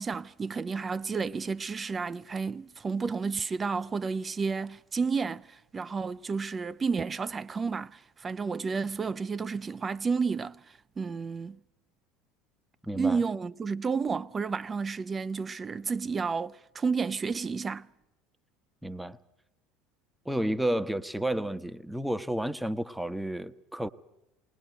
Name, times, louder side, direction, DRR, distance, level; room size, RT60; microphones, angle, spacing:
voice 1, 0.0-11.6 12.9-17.9, right 5 dB, 25° right, 0.7 m, -31 dB
voice 2, 12.8-13.2 18.8-19.2 20.2-23.9, right 1 dB, 5° right, 1.0 m, -31 dB
20.5 x 20.5 x 7.9 m
hypercardioid pair, 70°, 0 cm